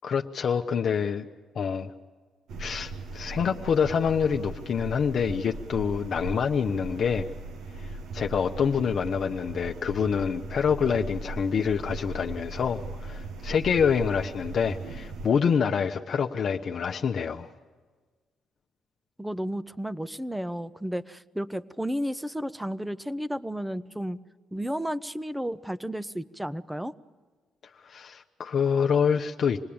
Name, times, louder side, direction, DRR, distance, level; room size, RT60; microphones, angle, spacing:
voice 1, 0.0-1.3 1.5-1.9 2.6-7.3 7.8-17.5 27.8-29.6, left 6 dB, 55° left, 3 dB, 0.8 m, -26 dB
sound 1, 2.5-15.3, right 3 dB, 80° right, 1.1 m, -38 dB
voice 2, 19.2-24.2 24.5-26.9, equal, 5° right, 16 dB, 0.7 m, -32 dB
27.0 x 19.5 x 8.7 m, 1.4 s
cardioid pair, 90°, 0 cm